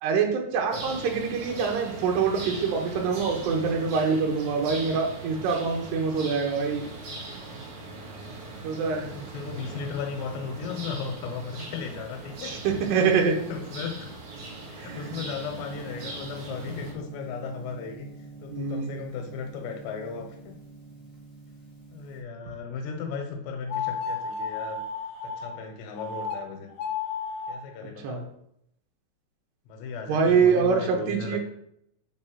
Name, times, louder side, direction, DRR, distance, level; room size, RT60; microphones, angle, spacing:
voice 1, 0.0-6.9 8.6-9.1 12.4-13.4 14.8-15.2 18.5-18.9 28.0-28.2 30.1-31.4, right 5 dB, 80° right, 1 dB, 3.2 m, -25 dB
sound 1, 0.7-16.9, right 2 dB, 55° right, 2.6 m, -40 dB
voice 2, 3.8-4.2 8.0-12.5 13.5-14.1 14.7-18.1 18.4-20.6 21.9-24.8 25.2-26.7 27.5-28.3 29.7-31.4, left 5 dB, 90° left, 4 dB, 3.4 m, -36 dB
Gong, 14.8-22.2, right 3 dB, 35° left, 1.3 m, -44 dB
sound 2, 23.7-25.5 26.0-26.4 26.7-27.5, left 5 dB, 65° left, 2.2 m, -32 dB
7.4 x 4.2 x 6.0 m, 0.74 s
omnidirectional pair, 4.8 m